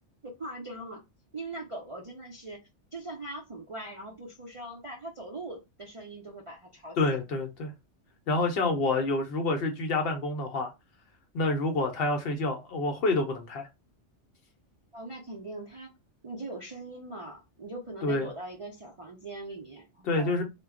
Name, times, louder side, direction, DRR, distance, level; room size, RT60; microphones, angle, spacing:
voice 1, 0.2-1.0 1.3-2.6 2.9-7.2 14.9-15.9 16.2-20.4, right 2 dB, 45° right, 0.4 m, -41 dB
voice 2, 7.0-7.7 8.3-10.7 11.3-13.7 18.0-18.3 20.0-20.4, left 2 dB, 60° left, 0.7 m, -28 dB
2.2 x 2.0 x 3.5 m
omnidirectional pair, 1.2 m